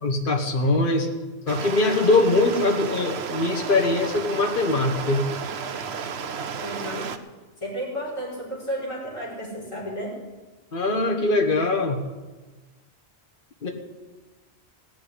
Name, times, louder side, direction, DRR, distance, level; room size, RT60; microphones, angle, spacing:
voice 1, 0.0-1.1 1.5-5.2 10.7-12.0 13.6-13.7, left 2 dB, 50° left, 3 dB, 1.6 m, -22 dB
Stream, 1.5-7.2, right 6 dB, 70° right, 1.1 m, -33 dB
voice 2, 6.6-7.0 7.6-10.1, equal, 25° left, -9 dB, 5.0 m, -32 dB
17.0 x 6.9 x 10.0 m, 1.2 s
omnidirectional pair, 1.1 m